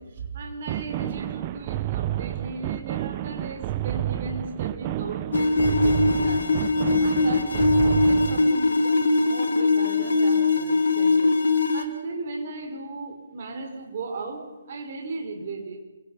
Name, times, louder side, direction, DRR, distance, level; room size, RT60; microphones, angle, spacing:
voice 1, 0.0-6.5 7.0-11.4 11.7-15.8, right 3 dB, 45° right, 4 dB, 5.3 m, -36 dB
sound 1, 0.7-8.5, right 13 dB, 30° right, 1.0 m, -30 dB
sound 2, 5.3-11.8, left 3 dB, 65° left, 3.5 m, -21 dB
29.0 x 24.5 x 5.9 m, 1.1 s
figure-of-eight pair, 135°, 0 cm